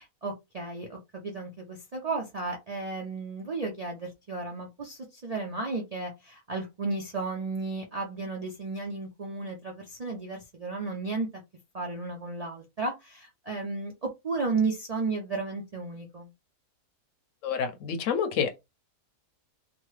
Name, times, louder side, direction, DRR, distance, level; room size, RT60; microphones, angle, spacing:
voice 1, 0.0-11.3 11.7-16.3, right 3 dB, 85° right, 0.3 m, -33 dB
voice 2, 17.4-18.6, left 7 dB, 65° left, 0.9 m, -28 dB
2.9 x 2.2 x 3.1 m
omnidirectional pair, 1.6 m